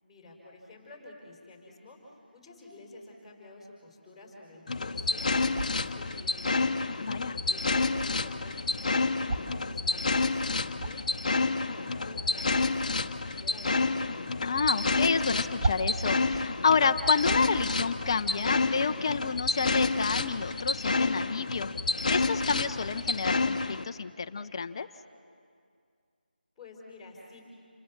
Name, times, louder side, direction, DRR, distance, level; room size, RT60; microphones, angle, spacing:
voice 1, 0.0-14.4 26.6-27.4, left 2 dB, ahead, -3 dB, 5.0 m, -50 dB
sound 1, 4.7-23.8, left 3 dB, 45° left, 1.0 m, -29 dB
sound 2, 5.5-5.9 7.1-7.2 7.4-7.5 7.7-8.1 9.2-9.6 10.1-10.2 10.5-11.1 12.4-12.6 13.3-13.6 13.9-14.2 14.6-14.7 14.9-15.0 15.6-16.5 16.9-17.0 17.2-17.7 18.0-18.2, right 2 dB, 20° right, 2.0 m, -34 dB
voice 2, 7.0-7.4 14.4-21.7 22.1-24.9, left 5 dB, 30° left, 10 dB, 0.7 m, -29 dB
29.0 x 26.0 x 7.3 m, 2.2 s
figure-of-eight pair, 160°, 5 cm